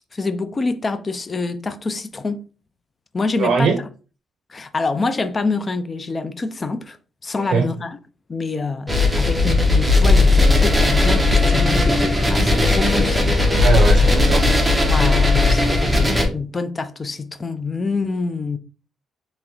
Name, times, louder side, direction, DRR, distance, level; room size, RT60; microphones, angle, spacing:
voice 1, 0.1-2.4 3.1-3.7 4.5-7.0 7.2-8.0 8.3-13.4 14.9-18.6, left 3 dB, 30° left, 0.5 m, -26 dB
voice 2, 3.4-3.8 7.4-7.7 13.6-14.4, right 5 dB, 70° right, 0.6 m, -20 dB
sound 1, 8.9-16.2, left 2 dB, 5° right, 1.0 m, -16 dB
3.4 x 3.0 x 3.0 m
cardioid pair, 90°, 0 cm